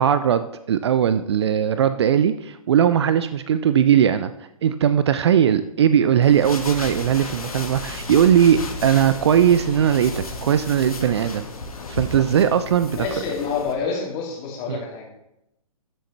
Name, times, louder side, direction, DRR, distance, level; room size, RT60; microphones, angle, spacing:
voice 1, 0.0-4.3 4.6-11.5 11.9-13.1 14.7-14.8, right 9 dB, 45° right, 13 dB, 0.5 m, -19 dB
sound 1, 6.2-13.7, left 3 dB, 70° left, 1.6 m, -33 dB
voice 2, 12.9-15.0, left 5 dB, 25° left, -1 dB, 2.7 m, -28 dB
13.0 x 7.5 x 3.3 m, 0.84 s
figure-of-eight pair, 125°, 19 cm